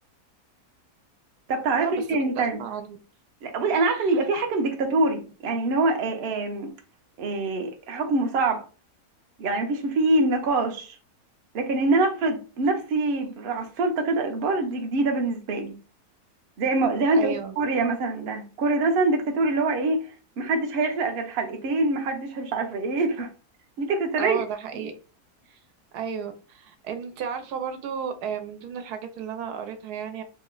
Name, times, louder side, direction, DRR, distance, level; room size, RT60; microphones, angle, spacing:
voice 1, 1.5-2.6 3.4-6.7 7.2-8.7 9.4-11.0 11.5-15.7 16.6-20.1 20.4-23.3 23.8-24.4 24.7-24.8, right 3 dB, 60° right, 0.6 m, -25 dB
voice 2, 2.4-3.0 17.1-17.5 24.2-24.9 25.5-25.6 25.9-30.2, right 7 dB, 90° right, 1.1 m, -33 dB
2.8 x 2.1 x 3.7 m
omnidirectional pair, 1.6 m